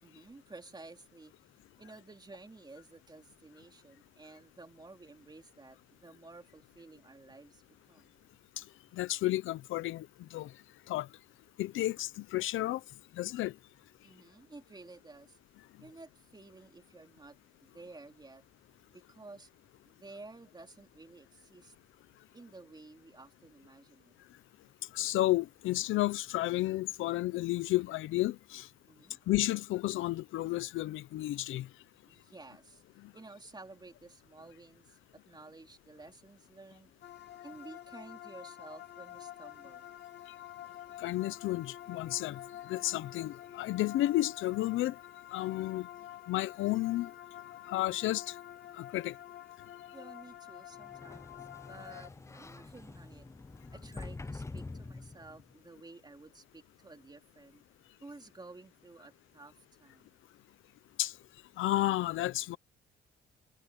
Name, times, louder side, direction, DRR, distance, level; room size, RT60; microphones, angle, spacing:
voice 1, 0.0-1.3 1.8-8.1 14.0-15.4 15.8-18.4 18.9-19.5 19.9-21.7 22.3-24.1 28.9-29.2 32.1-32.8 33.1-35.0 35.3-36.9 37.4-39.9 49.9-53.3 53.7-57.6 58.0-59.5 59.8-60.1, right 3 dB, 20° right, 3.7 m, -53 dB
voice 2, 8.9-10.5 10.9-11.1 11.6-12.8 13.2-13.5 24.9-28.7 29.3-31.7 33.0-33.1 41.0-42.4 42.7-45.0 45.3-45.9 46.3-47.1 47.7-48.3 48.7-49.1 61.0-61.1 61.6-62.6, left 16 dB, 85° left, 0.7 m, -32 dB
sound 1, 37.0-52.1, left 12 dB, 60° left, 2.0 m, -48 dB
Sliding door, 50.8-55.5, left 3 dB, 15° left, 0.7 m, -46 dB
cardioid pair, 90°, 20 cm